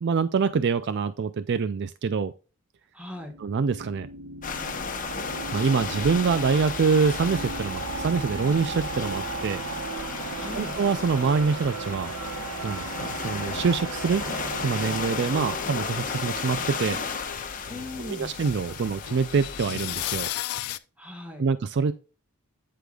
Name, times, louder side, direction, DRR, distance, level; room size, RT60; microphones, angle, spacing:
voice 1, 0.0-2.3 3.4-4.1 5.5-9.6 10.5-12.1 12.6-14.2 14.6-17.0 18.0-20.3 21.4-21.9, right 5 dB, 50° right, 13 dB, 0.4 m, -25 dB
voice 2, 2.9-3.3 10.3-10.7 15.2-15.7 17.7-18.3 21.0-21.4, left 1 dB, 5° right, 3 dB, 1.6 m, -39 dB
sound 1, 3.1-16.3, right 3 dB, 90° right, 1.0 m, -36 dB
sound 2, 4.4-20.3, left 5 dB, 40° left, 1.0 m, -34 dB
sound 3, 15.6-20.8, left 13 dB, 85° left, 0.5 m, -36 dB
8.2 x 7.8 x 2.3 m, 0.33 s
head